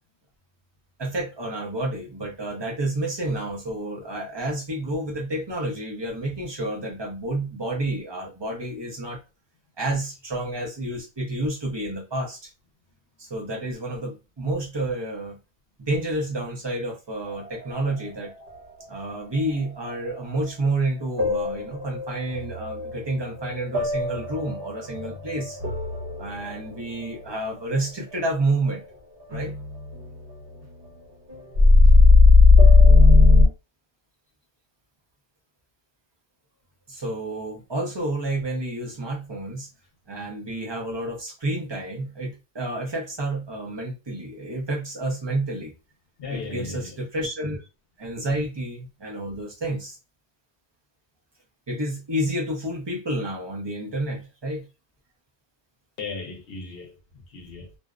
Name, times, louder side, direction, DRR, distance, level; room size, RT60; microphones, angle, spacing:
voice 1, 1.0-9.2 9.8-12.5 13.2-15.4 15.8-18.3 18.9-25.6 26.2-28.8 29.3-29.5 36.9-39.7 40.1-45.7 46.3-47.6 48.0-50.0 51.7-54.6, right 1 dB, 30° right, 0.6 m, -29 dB
sound 1, 17.3-18.8 19.4-19.9 20.4-20.5 21.2-28.8 29.2-30.9 31.3-33.5, left 3 dB, 55° right, 1.1 m, -18 dB
voice 2, 46.2-47.1 56.0-57.8, left 4 dB, 60° left, 0.9 m, -36 dB
2.5 x 2.0 x 2.4 m
omnidirectional pair, 1.1 m